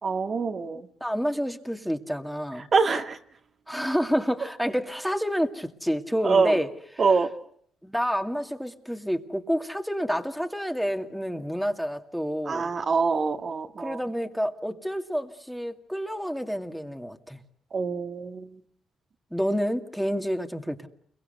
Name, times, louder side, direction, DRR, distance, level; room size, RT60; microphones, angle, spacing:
voice 1, 0.0-0.9 2.6-3.2 6.2-6.6 7.0-7.3 12.5-14.0 17.7-18.6, right 4 dB, 45° right, 5 dB, 1.9 m, -25 dB
voice 2, 1.0-2.7 3.7-6.7 7.8-12.7 13.8-17.4 19.3-20.9, equal, ahead, 5 dB, 2.3 m, -29 dB
29.5 x 23.0 x 8.0 m, 0.65 s
cardioid pair, 90°, 0 cm